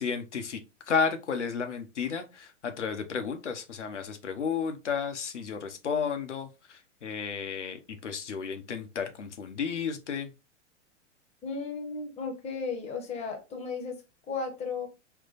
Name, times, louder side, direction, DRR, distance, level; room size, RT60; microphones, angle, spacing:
voice 1, 0.0-10.3, left 6 dB, 70° left, 0.8 m, -32 dB
voice 2, 11.4-14.0 14.3-14.9, left 4 dB, 15° left, 1.0 m, -35 dB
4.4 x 2.2 x 3.9 m
figure-of-eight pair, 100°, 37 cm